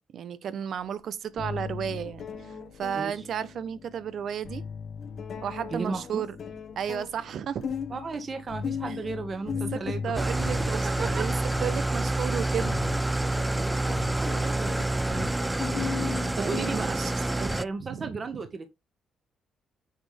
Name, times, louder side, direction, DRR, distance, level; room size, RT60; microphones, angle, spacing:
voice 1, 0.0-2.5 2.8-4.6 5.4-6.3 6.8-7.7 8.9-9.0 9.7-12.8 16.4-17.1 17.4-18.1, right 8 dB, 65° right, 1.0 m, -33 dB
sound 1, 0.8-0.9 1.4-17.2, left 6 dB, 60° left, 1.6 m, -38 dB
voice 2, 5.7-6.2 7.9-10.2 10.7-11.4 13.3-15.6 16.0-17.0 17.5-18.7, right 4 dB, 40° right, 1.8 m, -35 dB
Engine starting / Idling, 10.1-17.6, right 2 dB, 10° right, 0.4 m, -28 dB
9.3 x 6.3 x 3.5 m
cardioid pair, 90°, 0 cm